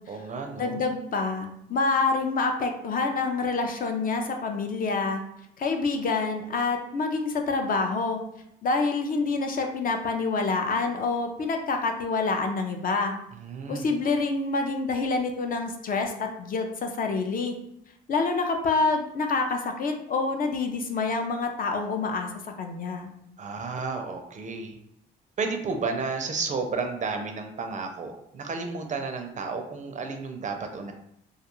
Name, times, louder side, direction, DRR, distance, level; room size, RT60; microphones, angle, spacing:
voice 1, 0.1-0.8 13.4-13.9 23.4-24.8 25.4-30.9, right 4 dB, 40° right, 4 dB, 0.4 m, -32 dB
voice 2, 0.6-5.2 5.6-8.2 8.6-13.1 13.7-17.6 18.1-22.3 22.6-23.1, left 3 dB, 45° left, 4 dB, 0.4 m, -27 dB
2.3 x 2.3 x 2.9 m, 0.77 s
cardioid pair, 90°, 20 cm